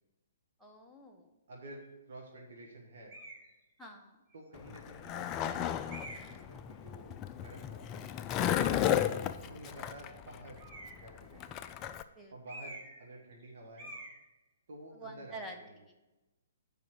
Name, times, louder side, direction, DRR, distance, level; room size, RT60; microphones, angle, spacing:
voice 1, 0.6-1.2 3.8-4.2 8.6-8.9 12.2-12.3 15.0-15.5, right 1 dB, ahead, -1 dB, 1.0 m, -47 dB
voice 2, 1.5-3.1 4.3-5.7 6.0-8.1 9.4-10.6 10.9-11.6 12.3-13.9 14.7-15.9, right 1 dB, 55° right, -1 dB, 1.6 m, -51 dB
sound 1, 3.1-3.5 4.3-4.4 5.9-6.4 10.6-11.1 12.5-13.1 13.3-13.5 13.8-14.2, right 2 dB, 25° right, 2.0 m, -47 dB
Skateboard, 4.6-12.0, left 10 dB, 25° left, 0.4 m, -34 dB
7.6 x 5.1 x 6.4 m, 1.0 s
figure-of-eight pair, 125°, 0 cm